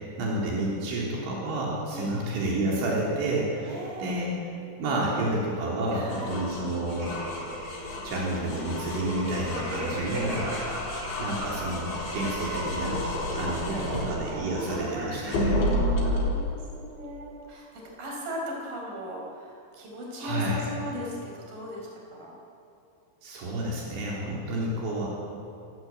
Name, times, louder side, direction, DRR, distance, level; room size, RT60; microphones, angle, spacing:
voice 1, 0.2-4.4 4.8-7.1 8.0-10.6 11.2-13.0 13.4-15.7 20.2-20.6 23.2-25.1, right 1 dB, 75° right, -4 dB, 5.7 m, -30 dB
voice 2, 3.6-4.2 5.9-6.3 13.5-15.2 15.5-22.3 24.4-24.7, equal, 50° right, -1 dB, 6.6 m, -38 dB
sound 1, 6.1-14.9 15.3-16.3, left 1 dB, 70° left, 6.4 m, -32 dB
sound 2, 6.9-15.5, right 1 dB, 20° right, 5.8 m, -36 dB
26.0 x 15.0 x 9.0 m, 2.6 s
omnidirectional pair, 5.4 m